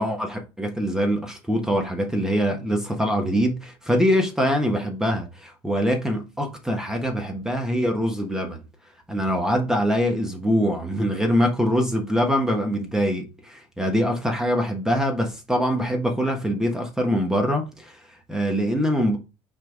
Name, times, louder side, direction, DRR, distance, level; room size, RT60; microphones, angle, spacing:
voice 1, 0.0-8.6 9.1-19.2, equal, 5° right, 1.3 m, -24 dB
5.8 x 3.5 x 4.7 m
cardioid pair, 115°, 11 cm